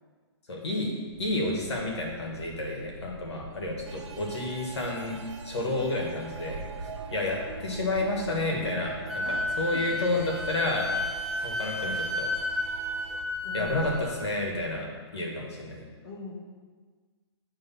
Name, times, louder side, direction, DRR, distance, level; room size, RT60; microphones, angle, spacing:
voice 1, 0.5-0.9 1.2-5.1 5.4-10.9 11.4-12.3 13.5-15.8, left 2 dB, 75° left, 0 dB, 2.0 m, -30 dB
sound 1, 1.1-14.7, right 3 dB, 25° right, 1.2 m, -46 dB
sound 2, 3.9-13.2, right 5 dB, 90° right, 0.8 m, -44 dB
Wind instrument woodwind instrument, 9.1-14.2, left 1 dB, ahead, 0.6 m, -32 dB
voice 2, 13.4-13.8 16.0-16.3, left 3 dB, 50° left, -4 dB, 1.2 m, -41 dB
9.0 x 3.5 x 5.7 m, 1.5 s
hypercardioid pair, 155°, 14 cm